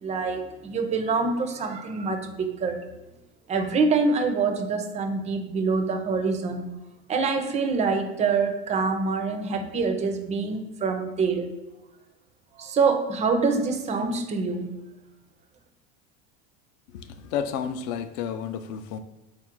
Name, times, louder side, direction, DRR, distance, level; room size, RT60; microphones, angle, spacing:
voice 1, 0.0-2.9 3.5-6.7 7.1-11.5 12.6-14.7, right 4 dB, 20° right, 6 dB, 0.4 m, -25 dB
voice 2, 16.9-19.0, left 8 dB, 50° left, 10 dB, 0.4 m, -31 dB
3.9 x 2.5 x 4.4 m, 1.0 s
supercardioid pair, 125°, 32 cm